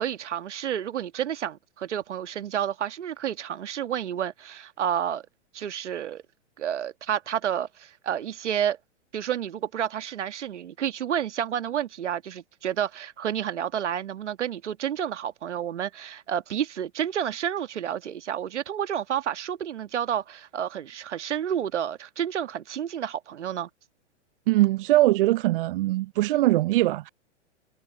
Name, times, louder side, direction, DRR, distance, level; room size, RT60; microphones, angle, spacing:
voice 1, 0.0-5.2 5.5-6.2 6.6-8.8 9.1-23.7, right 9 dB, 75° right, 1.4 m, -30 dB
voice 2, 24.5-27.1, right 17 dB, 50° right, 0.5 m, -21 dB
hypercardioid pair, 115°, 36 cm